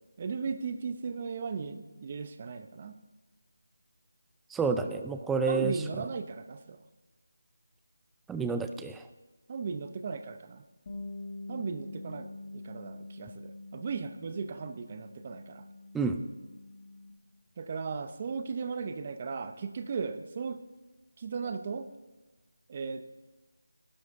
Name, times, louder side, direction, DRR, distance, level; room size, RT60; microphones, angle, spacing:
voice 1, 0.2-3.0 5.5-6.8 9.5-10.6 11.5-15.7 17.6-20.6 21.2-21.9 22.7-23.2, right 5 dB, 30° right, 10 dB, 0.7 m, -37 dB
voice 2, 4.5-5.8 8.3-9.0 15.9-16.2, right 4 dB, 5° right, 7 dB, 0.4 m, -29 dB
Bass guitar, 10.9-17.1, left 2 dB, 30° left, 1.5 m, -45 dB
18.5 x 11.0 x 3.6 m, 1.2 s
figure-of-eight pair, 165°, 0 cm